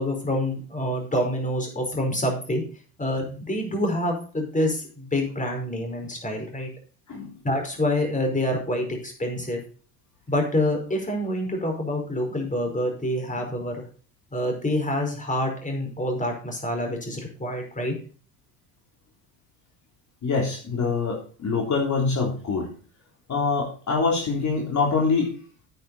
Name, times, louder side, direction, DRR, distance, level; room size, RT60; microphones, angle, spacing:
voice 1, 0.0-2.6 3.0-6.7 7.4-9.6 10.3-13.8 14.3-17.9, left 1 dB, 20° left, 2 dB, 5.0 m, -27 dB
voice 2, 7.1-7.4 20.2-22.7 23.3-25.4, left 4 dB, 45° left, -1 dB, 3.6 m, -25 dB
9.5 x 9.2 x 4.2 m, 0.40 s
hypercardioid pair, 70°, 40 cm